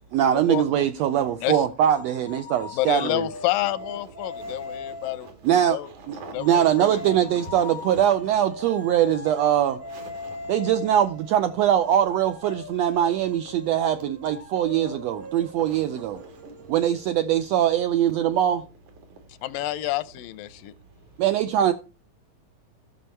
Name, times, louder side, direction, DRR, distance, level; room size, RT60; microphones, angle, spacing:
voice 1, 0.1-3.3 5.4-5.8 6.1-9.8 10.5-16.2 16.7-18.6 21.2-21.7, right 10 dB, 90° right, 1.4 m, -22 dB
sound 1, 1.5-5.4 6.4-17.7, left 2 dB, 15° right, 0.5 m, -40 dB
voice 2, 2.7-5.3 5.7-5.9 6.3-7.0 19.4-20.7, left 15 dB, 90° left, 2.3 m, -28 dB
voice 3, 4.3-5.6 6.1-6.7 8.6-8.7 9.9-10.5 14.9-15.0 15.6-16.7, right 3 dB, 65° right, 3.5 m, -45 dB
14.5 x 6.3 x 4.3 m
omnidirectional pair, 3.8 m